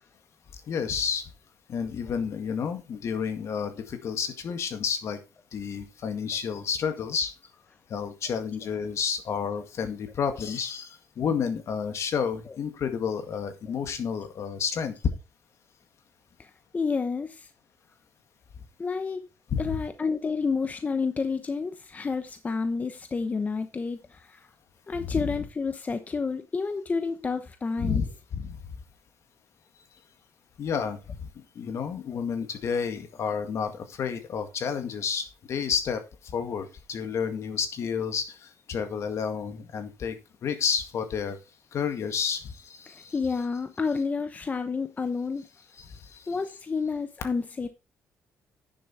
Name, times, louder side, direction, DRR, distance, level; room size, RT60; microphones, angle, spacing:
voice 1, 0.7-1.3 1.7-5.2 5.5-7.3 7.9-14.9 19.5-19.8 25.0-25.3 27.8-28.6 30.6-41.4 41.7-43.1 45.8-46.4, left 6 dB, 60° left, 1.9 m, -31 dB
voice 2, 16.4-17.5 18.8-19.3 19.6-24.5 24.9-28.0 42.9-45.5 46.3-47.7, left 4 dB, 30° left, 1.0 m, -30 dB
10.0 x 7.0 x 4.3 m
cardioid pair, 105°, 6 cm